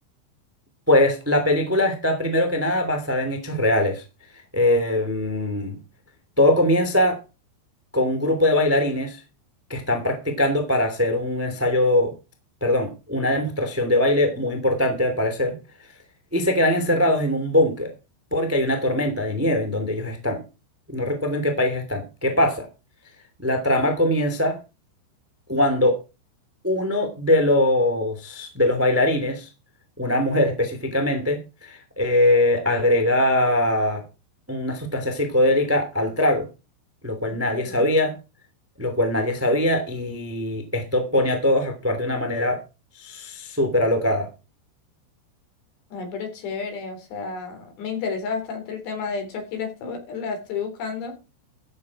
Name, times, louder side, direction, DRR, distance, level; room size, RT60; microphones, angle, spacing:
voice 1, 0.9-4.0 4.5-5.7 6.4-7.2 7.9-9.2 9.7-12.1 12.6-15.5 16.3-17.9 18.3-20.4 20.9-22.6 23.4-24.6 25.5-26.0 26.6-29.5 30.0-34.0 34.5-36.5 37.0-38.1 38.8-42.6 42.9-44.3, left 1 dB, 15° right, 6 dB, 0.6 m, -22 dB
voice 2, 37.5-37.9 45.9-51.2, left 5 dB, 60° left, 6 dB, 5.7 m, -31 dB
15.0 x 8.0 x 4.8 m, 0.30 s
omnidirectional pair, 5.8 m